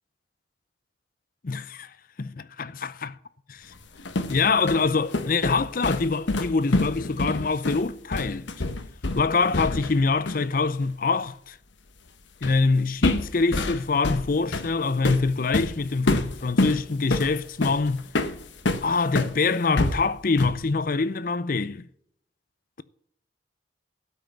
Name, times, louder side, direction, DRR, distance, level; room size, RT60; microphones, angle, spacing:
voice 1, 1.4-1.9 2.2-3.2 3.5-3.7 4.3-8.5 9.2-11.6 12.4-18.1 18.8-21.8, left 4 dB, 50° left, 0.6 m, -25 dB
sound 1, 3.8-10.0 10.3-10.5 12.4-12.7 13.0-19.4 19.8-20.7, left 2 dB, 85° left, 1.0 m, -27 dB
13.0 x 5.7 x 7.7 m
head